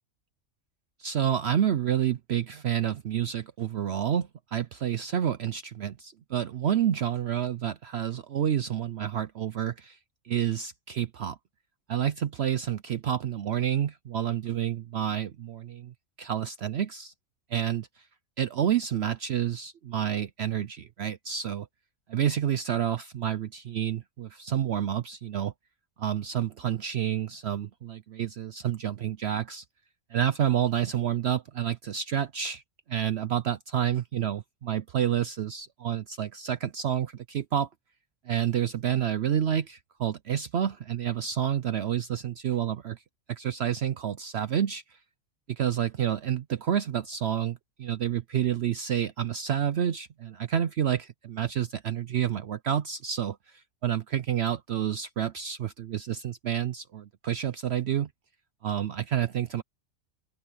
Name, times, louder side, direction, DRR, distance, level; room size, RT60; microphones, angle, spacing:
voice 1, 1.0-10.0 10.2-11.4 11.9-17.1 17.5-17.9 18.4-21.7 22.1-25.5 26.0-29.6 30.1-32.6 32.9-37.7 38.3-43.0 43.3-44.8 45.5-58.1 58.6-59.6, right 9 dB, 60° right, 0.8 m, -29 dB
open air
omnidirectional pair, 1.4 m